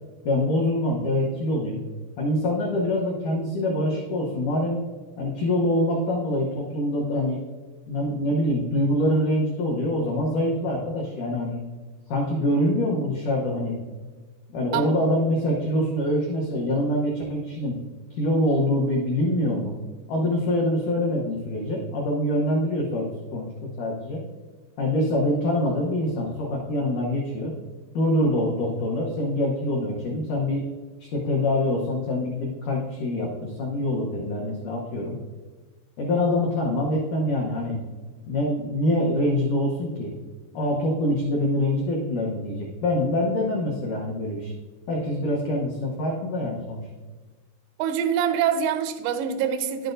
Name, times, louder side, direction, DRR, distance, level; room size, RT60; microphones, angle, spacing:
voice 1, 0.3-1.8 2.2-4.8 5.2-7.4 7.9-11.6 12.1-13.8 14.5-17.8 18.2-19.7 20.1-24.2 24.8-27.5 27.9-30.7 31.1-35.2 36.0-37.8 38.3-40.1 40.5-44.5 44.9-46.8, left 1 dB, 85° left, 1.7 m, -25 dB
voice 2, 47.8-49.9, right 8 dB, 90° right, 2.2 m, -25 dB
11.0 x 8.3 x 2.6 m
omnidirectional pair, 5.1 m